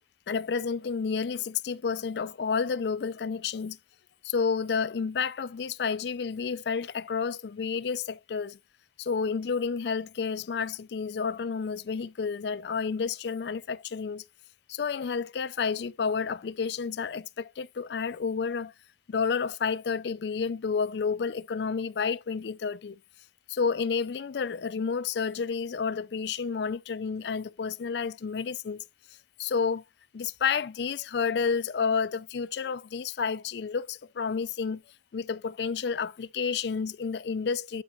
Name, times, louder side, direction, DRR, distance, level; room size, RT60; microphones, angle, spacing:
voice 1, 0.3-3.8 4.2-8.6 9.0-14.2 14.7-18.7 19.1-23.0 23.5-28.8 29.4-29.8 30.1-34.8 35.1-37.8, left 5 dB, 65° left, 0.4 m, -30 dB
12.0 x 4.6 x 2.9 m
head